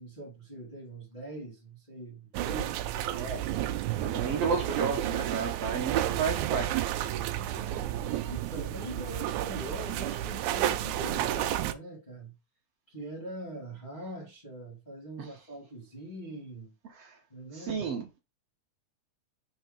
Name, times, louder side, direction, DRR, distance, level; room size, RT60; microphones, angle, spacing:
voice 1, 0.0-3.0 7.3-12.3 12.9-16.7 17.3-17.9, right 1 dB, 20° left, 1.9 m, -43 dB
sound 1, 2.3-11.7, right 12 dB, 85° right, 2.1 m, -31 dB
voice 2, 3.1-3.5 4.0-6.7 15.2-15.3 16.9-17.2 17.5-18.2, right 5 dB, 65° right, 1.9 m, -32 dB
5.6 x 3.9 x 5.1 m
omnidirectional pair, 3.3 m